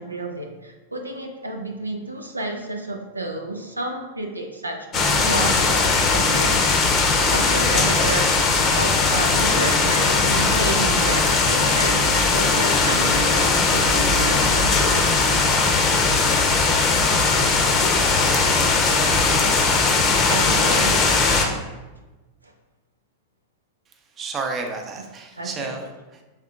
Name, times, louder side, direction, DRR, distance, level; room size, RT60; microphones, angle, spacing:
voice 1, 0.0-5.6 6.1-15.2 16.3-16.6 20.3-21.5 22.4-22.5 25.3-25.8, right 2 dB, 85° right, 3 dB, 0.4 m, -31 dB
sound 1, 4.9-21.5, left 4 dB, 30° left, 0.7 m, -19 dB
voice 2, 24.2-26.2, right 4 dB, 25° right, 3 dB, 0.6 m, -31 dB
6.2 x 3.5 x 2.4 m, 1.2 s
figure-of-eight pair, 90°, 0 cm